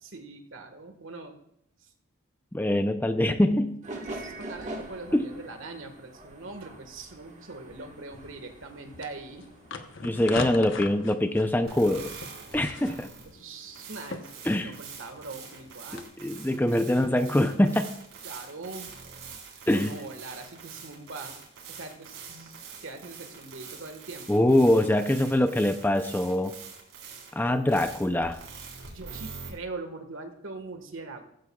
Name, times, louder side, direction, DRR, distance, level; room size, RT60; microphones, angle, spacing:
voice 1, 0.0-1.4 4.0-9.4 12.5-13.1 13.3-14.3 14.6-16.0 18.2-18.9 19.7-21.4 21.7-24.6 28.9-31.3, right 3 dB, 70° right, 6 dB, 1.6 m, -42 dB
voice 2, 2.5-3.8 5.1-5.3 10.0-12.1 12.5-13.1 14.4-14.7 15.9-17.9 19.7-19.9 24.3-26.5 27.3-28.4, left 1 dB, 10° left, 7 dB, 0.5 m, -24 dB
sound 1, 3.8-10.3, right 1 dB, 35° right, 1.5 m, -43 dB
sound 2, 8.1-16.0, left 3 dB, 60° left, 1.0 m, -42 dB
sound 3, 11.6-29.5, right 5 dB, 90° right, 4.1 m, -45 dB
15.5 x 15.0 x 2.4 m, 0.75 s
head